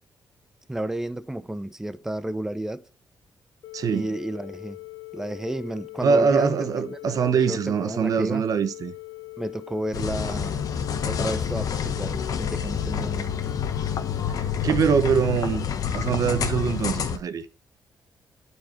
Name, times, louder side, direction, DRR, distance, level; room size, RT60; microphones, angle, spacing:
voice 1, 0.7-2.9 3.9-4.8 5.1-8.5 9.4-10.6 11.0-13.4, right 1 dB, 5° right, 0.5 m, -32 dB
sound 1, 3.6-15.1, left 26 dB, 85° left, 0.7 m, -41 dB
voice 2, 3.7-4.1 6.0-8.9 14.6-15.7 15.9-17.4, right 6 dB, 60° right, 0.9 m, -23 dB
sound 2, 9.9-17.2, left 7 dB, 60° left, 1.0 m, -28 dB
8.9 x 4.7 x 4.4 m
cardioid pair, 100°, 7 cm